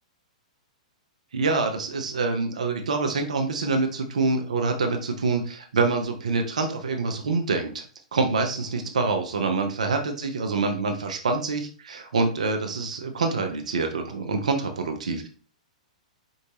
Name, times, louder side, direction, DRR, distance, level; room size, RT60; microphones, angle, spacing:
voice 1, 1.3-7.9 8.1-15.3, right 3 dB, 70° right, 5 dB, 0.7 m, -26 dB
4.5 x 2.7 x 2.8 m, 0.41 s
figure-of-eight pair, 110°, 4 cm